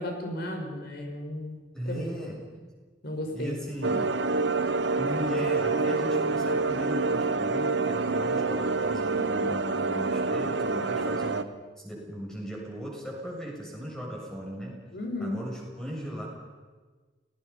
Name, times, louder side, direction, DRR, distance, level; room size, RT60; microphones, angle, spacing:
voice 1, 0.0-1.6 1.9-2.1 3.0-3.6 14.9-15.4, left 1 dB, 60° left, 2 dB, 5.7 m, -34 dB
voice 2, 1.7-2.5 3.3-4.2 5.0-11.5 11.8-14.8 15.2-16.3, equal, 5° left, -3 dB, 7.5 m, -37 dB
sound 1, 3.8-11.4, right 3 dB, 75° right, 1.0 m, -27 dB
29.0 x 19.0 x 5.7 m, 1.4 s
head